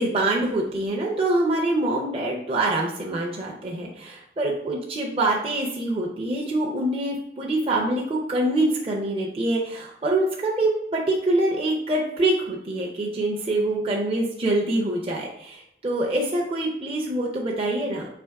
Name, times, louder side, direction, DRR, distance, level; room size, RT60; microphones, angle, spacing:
voice 1, 0.0-18.1, right 2 dB, 30° right, -3 dB, 0.5 m, -25 dB
3.3 x 2.9 x 4.5 m, 0.77 s
head